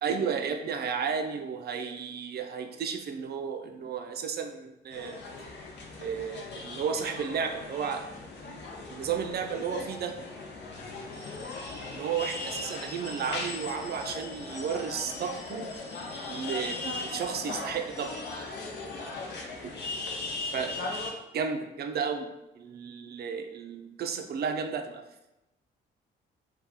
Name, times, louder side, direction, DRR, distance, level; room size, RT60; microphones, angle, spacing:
voice 1, 0.0-5.2 6.0-8.1 8.4-10.2 11.9-15.7 16.3-18.1 19.6-19.7 20.5-21.0 21.3-22.3 22.6-25.0, right 6 dB, 55° right, 5 dB, 0.4 m, -33 dB
sound 1, 4.9-21.1, left 3 dB, 60° left, 0.6 m, -38 dB
2.8 x 2.3 x 3.6 m, 0.95 s
cardioid pair, 90°, 20 cm